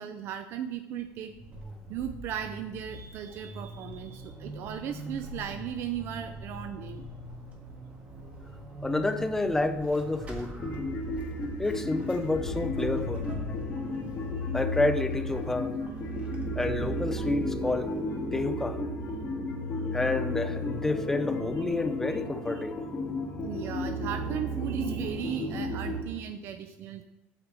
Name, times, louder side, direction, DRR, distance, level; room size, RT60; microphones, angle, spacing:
voice 1, 0.0-1.3 1.9-7.1 14.3-14.5 19.2-19.3 21.6-21.7 22.1-22.2 22.5-22.6 23.4-27.0, right 9 dB, 55° right, 9 dB, 0.5 m, -37 dB
Vehicle / Accelerating revving vroom / Squeak, 1.0-18.2, right 1 dB, 25° right, 1.6 m, -43 dB
voice 2, 8.8-10.9 11.6-13.3 14.5-15.7 16.5-18.0 18.3-18.8 19.9-22.8, left 2 dB, 10° left, 9 dB, 0.5 m, -29 dB
sound 1, 10.6-26.0, left 1 dB, 25° left, 2.5 m, -33 dB
8.6 x 4.8 x 7.5 m, 1.0 s
cardioid pair, 165°, 5 cm